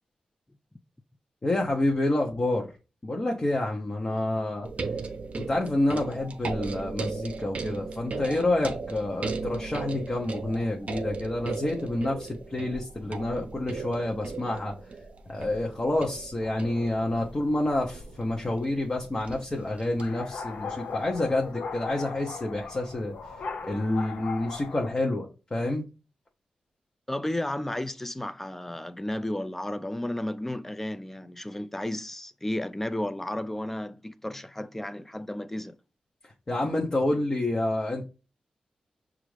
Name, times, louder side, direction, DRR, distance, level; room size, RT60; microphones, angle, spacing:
voice 1, 1.4-2.7 3.0-4.7 5.4-14.7 15.3-23.1 23.6-25.8 36.2-38.1, left 1 dB, 30° left, 0.7 m, -28 dB
sound 1, 4.6-20.0 21.1-21.2, right 4 dB, 55° right, 0.6 m, -37 dB
sound 2, 16.4-24.9, left 5 dB, 80° left, 0.6 m, -40 dB
voice 2, 27.1-35.8, left 1 dB, 10° left, 0.3 m, -33 dB
6.0 x 2.5 x 3.2 m
cardioid pair, 70°, 2 cm